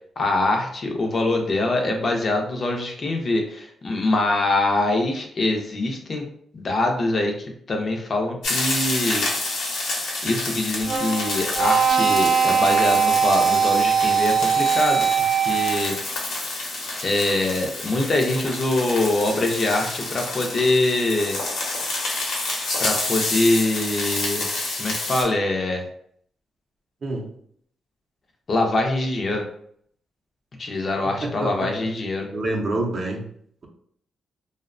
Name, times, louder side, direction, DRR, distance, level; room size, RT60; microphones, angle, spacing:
voice 1, 0.2-6.2 6.5-7.4 7.7-9.3 10.2-16.0 17.0-21.4 22.8-24.5 24.8-25.9 28.5-29.5 30.6-32.3, left 2 dB, 40° left, 2 dB, 0.4 m, -24 dB
sound 1, 8.4-25.2, left 2 dB, 85° left, 0.8 m, -29 dB
sound 2, 10.8-15.9, right 7 dB, 90° right, 0.5 m, -20 dB
voice 2, 31.2-31.7 32.3-33.2, right 2 dB, 40° right, 0 dB, 0.5 m, -27 dB
2.6 x 2.0 x 2.5 m, 0.64 s
wide cardioid pair, 140°, 0 cm